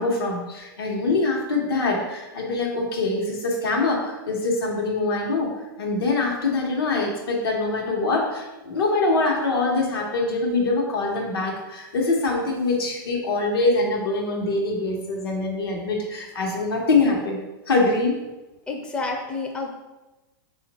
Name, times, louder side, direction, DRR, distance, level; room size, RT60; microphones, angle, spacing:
voice 1, 0.0-5.5 5.8-17.4 17.7-18.1, left 3 dB, 85° left, -1 dB, 1.0 m, -24 dB
voice 2, 18.7-19.7, left 3 dB, 10° left, 1 dB, 0.4 m, -29 dB
3.0 x 2.4 x 3.9 m, 1.1 s
hypercardioid pair, 125°, 12 cm